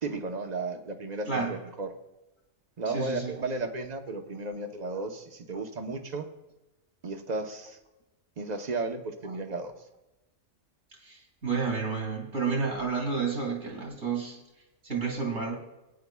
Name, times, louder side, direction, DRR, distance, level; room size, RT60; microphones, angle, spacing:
voice 1, 0.0-1.9 2.8-6.3 7.0-7.8 8.4-9.7, right 3 dB, 35° right, 6 dB, 0.9 m, -34 dB
voice 2, 2.9-3.4 11.0-14.4 14.8-15.6, right 5 dB, 70° right, 0 dB, 2.9 m, -30 dB
20.0 x 9.5 x 2.3 m, 0.95 s
omnidirectional pair, 1.4 m